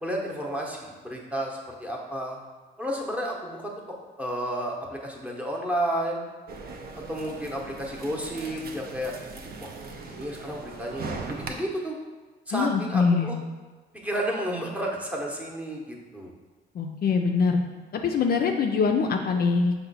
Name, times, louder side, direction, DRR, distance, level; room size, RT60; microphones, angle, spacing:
voice 1, 0.0-2.4 2.8-3.7 4.2-6.2 7.1-9.1 9.6-9.7 10.0-11.9 12.5-13.4 14.0-16.3, right 1 dB, 5° right, -2 dB, 0.8 m, -31 dB
sound 1, 6.5-11.5, right 3 dB, 50° right, 0.5 m, -39 dB
voice 2, 12.5-13.3 16.8-17.6 17.9-19.7, left 5 dB, 50° left, 3 dB, 0.4 m, -23 dB
5.4 x 2.2 x 4.0 m, 1.3 s
cardioid pair, 90°, 20 cm